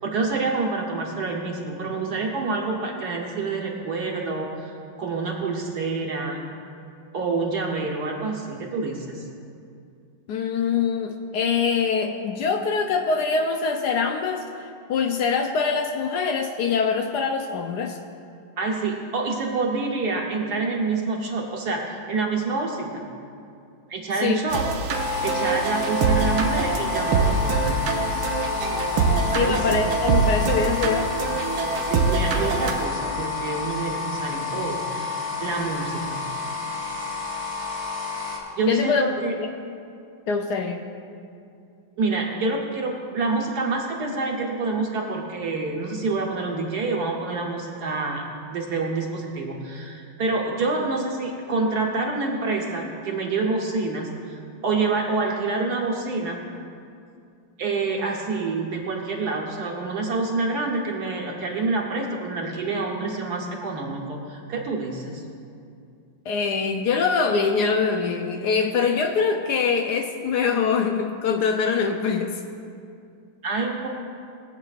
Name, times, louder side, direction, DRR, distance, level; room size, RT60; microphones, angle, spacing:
voice 1, 0.0-4.7 5.0-6.4 7.1-9.2 18.6-23.0 23.9-24.6 25.2-27.8 29.3-29.6 31.9-36.2 38.5-39.3 42.0-48.2 48.5-56.4 57.6-65.2 73.4-73.9, right 3 dB, 55° right, -1 dB, 1.4 m, -27 dB
voice 2, 10.3-18.0 24.2-24.4 29.3-31.1 38.7-39.5 40.3-40.9 66.3-72.4, left 5 dB, 75° left, 5 dB, 0.9 m, -24 dB
sound 1, 24.5-32.9, right 4 dB, 85° right, 1.6 m, -24 dB
sound 2, 24.9-38.4, left 6 dB, 10° left, 1.6 m, -30 dB
18.5 x 8.0 x 2.4 m, 2.4 s
omnidirectional pair, 2.2 m